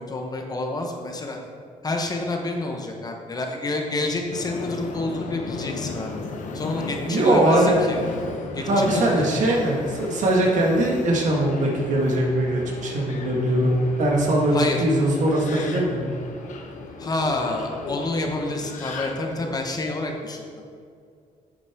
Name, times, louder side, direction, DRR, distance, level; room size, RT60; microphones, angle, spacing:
voice 1, 0.0-1.4 1.8-6.2 6.5-8.0 8.5-9.4 14.5-14.8 17.0-20.6, left 2 dB, 30° left, 2 dB, 1.0 m, -28 dB
Subway metro underground, 4.3-19.6, left 4 dB, 65° left, 0.9 m, -35 dB
voice 2, 7.1-7.9 8.6-13.7 14.0-16.2, right 1 dB, 65° right, -1 dB, 1.7 m, -21 dB
8.6 x 7.7 x 3.6 m, 2.2 s
cardioid pair, 125°, 14 cm